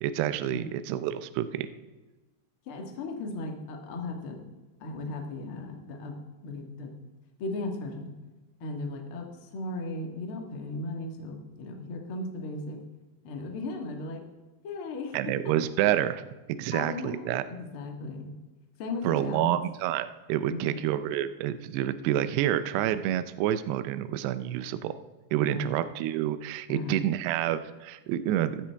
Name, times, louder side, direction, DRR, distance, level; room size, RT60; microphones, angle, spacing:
voice 1, 0.0-1.7 15.1-16.2 16.5-17.4 19.0-25.0 25.3-28.7, right 12 dB, 80° right, 12 dB, 2.5 m, -28 dB
voice 2, 2.6-4.4 4.8-6.2 6.4-6.9 7.4-8.1 8.6-12.8 13.2-14.2 14.6-15.2 16.7-18.3 18.8-19.6 20.5-20.8 25.4-25.7 26.7-27.0, left 2 dB, 80° left, 2 dB, 1.2 m, -36 dB
15.5 x 13.0 x 3.5 m, 1.2 s
omnidirectional pair, 5.3 m